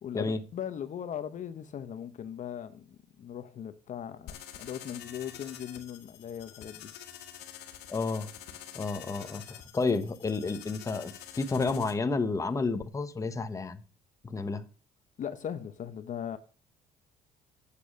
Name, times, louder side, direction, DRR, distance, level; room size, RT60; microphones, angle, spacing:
voice 1, 0.0-6.9 15.2-16.4, left 9 dB, 45° left, 0.9 m, -39 dB
sound 1, 4.3-11.9, left 10 dB, 80° left, 1.6 m, -47 dB
voice 2, 7.9-8.3 8.7-13.8 14.2-14.6, left 3 dB, 20° left, 1.0 m, -31 dB
8.5 x 6.8 x 6.3 m
cardioid pair, 110°, 17 cm